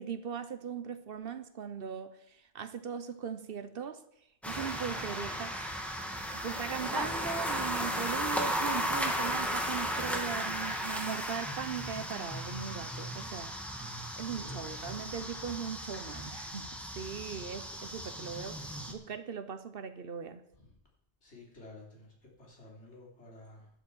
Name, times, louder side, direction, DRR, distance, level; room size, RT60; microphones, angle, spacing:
voice 1, 0.0-4.0 4.5-5.6 6.3-13.5 14.2-16.7 16.9-20.4, right 7 dB, 60° right, 11 dB, 1.0 m, -39 dB
sound 1, 4.4-18.9, equal, ahead, 1.6 m, -35 dB
voice 2, 14.1-14.6 20.6-20.7 21.2-23.7, left 2 dB, 80° left, -3 dB, 3.6 m, -53 dB
11.0 x 7.9 x 7.1 m, 0.74 s
omnidirectional pair, 1.1 m